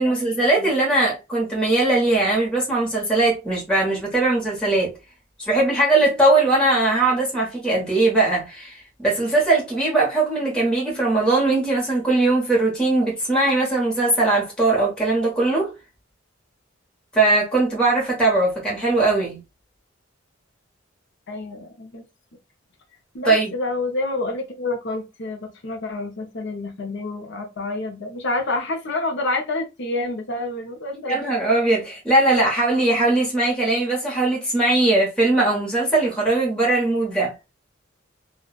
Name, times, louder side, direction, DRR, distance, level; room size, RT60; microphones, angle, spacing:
voice 1, 0.0-4.9 5.4-15.7 17.1-19.4 23.2-23.5 31.1-37.3, right 2 dB, 5° left, 1.1 m, -20 dB
voice 2, 21.3-22.0 23.1-31.3, left 2 dB, 60° left, 0.7 m, -28 dB
3.7 x 2.3 x 2.3 m
head